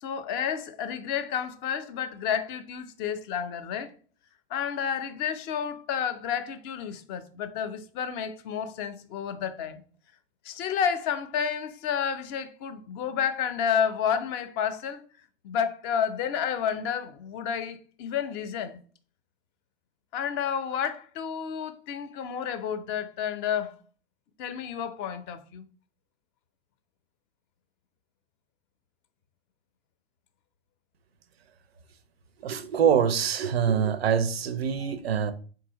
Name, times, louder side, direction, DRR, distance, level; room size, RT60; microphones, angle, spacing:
voice 1, 0.0-3.9 4.5-9.8 10.4-15.0 15.4-18.8 20.1-23.8 24.4-25.6, left 8 dB, 40° left, 0.4 m, -30 dB
voice 2, 32.4-35.3, right 7 dB, 85° right, 0.5 m, -24 dB
3.7 x 2.7 x 2.8 m
hypercardioid pair, 95°, 30 cm